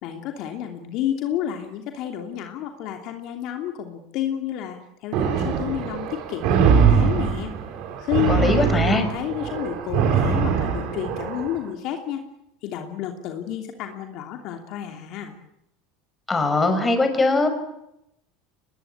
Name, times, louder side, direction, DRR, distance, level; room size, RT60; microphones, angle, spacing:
voice 1, 0.0-7.5 8.0-12.2 12.6-15.3, left 10 dB, 55° left, 4 dB, 2.9 m, -30 dB
sound 1, 5.1-11.6, right 7 dB, 60° right, 5.0 m, -22 dB
voice 2, 8.3-9.0 16.3-17.5, left 3 dB, 15° left, 7 dB, 5.7 m, -20 dB
23.0 x 20.5 x 8.9 m, 0.82 s
supercardioid pair, 110°, 0 cm